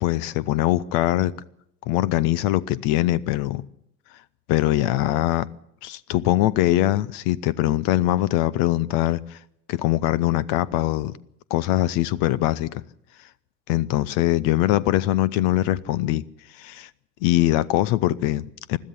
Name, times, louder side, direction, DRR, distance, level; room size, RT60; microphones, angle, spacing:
voice 1, 0.0-1.3 1.9-3.6 4.5-5.5 5.8-9.4 9.7-11.2 11.5-12.8 13.7-16.2 16.6-16.9 17.2-18.8, left 15 dB, 40° left, 0.7 m, -22 dB
21.0 x 13.5 x 10.0 m
figure-of-eight pair, 80°, 50 cm